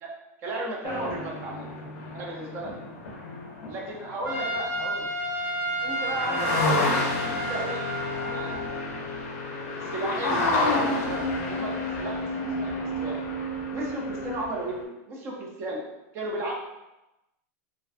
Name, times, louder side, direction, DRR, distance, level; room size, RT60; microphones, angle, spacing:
voice 1, 0.4-1.7 2.1-2.8 3.7-5.1 5.8-6.5 7.2-7.8 8.2-8.5 9.6-13.2 13.7-14.8 15.1-15.8 16.1-16.5, right 1 dB, 30° right, -1 dB, 0.4 m, -35 dB
sound 1, 0.8-4.9 5.5-5.6 5.8-14.8, left 2 dB, 50° left, 0.5 m, -30 dB
Trumpet, 4.2-8.8, right 1 dB, 85° right, 0.8 m, -31 dB
2.4 x 2.3 x 2.4 m, 0.97 s
supercardioid pair, 160°, 9 cm